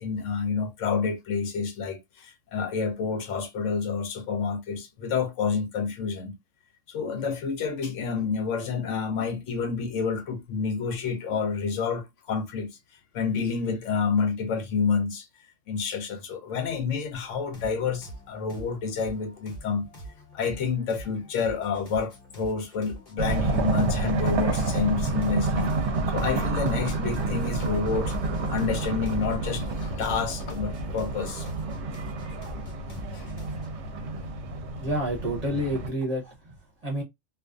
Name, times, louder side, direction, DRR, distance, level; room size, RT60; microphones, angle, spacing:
voice 1, 0.0-6.3 6.9-12.8 13.1-15.3 15.7-19.9 20.3-25.7 26.1-28.1 28.5-31.5 33.1-33.3, left 5 dB, 75° left, 0.9 m, -29 dB
sound 1, 17.2-33.7, right 1 dB, 50° left, 0.9 m, -45 dB
sound 2, 23.2-35.9, right 3 dB, 70° right, 0.8 m, -29 dB
voice 2, 34.8-37.0, right 1 dB, 40° right, 0.7 m, -29 dB
2.5 x 2.2 x 2.2 m
omnidirectional pair, 1.3 m